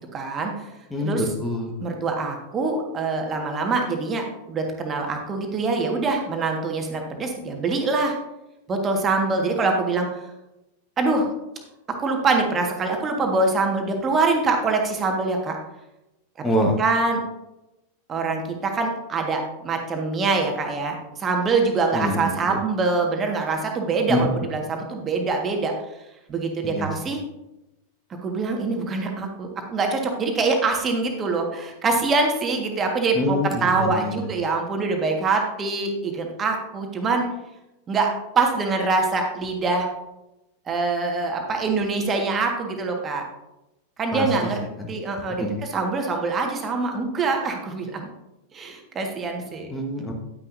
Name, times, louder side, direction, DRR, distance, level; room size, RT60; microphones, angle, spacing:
voice 1, 0.1-0.7 1.0-1.2 1.8-8.2 8.7-10.3 11.0-11.3 12.0-15.6 16.4-16.5 16.8-17.2 18.1-25.7 26.3-27.2 28.2-37.3 37.9-39.9 40.7-43.3 44.0-44.6 44.9-45.4 45.7-48.1 48.5-49.7, right 3 dB, 25° right, 2 dB, 1.7 m, -24 dB
voice 2, 0.9-1.7 16.4-16.8 21.9-22.6 24.1-24.3 26.6-26.9 33.1-34.3 44.1-44.5 44.8-44.9 45.4-45.6 49.7-50.1, left 1 dB, 10° left, 0 dB, 1.4 m, -25 dB
10.5 x 9.8 x 2.7 m, 0.93 s
figure-of-eight pair, 90°, 0 cm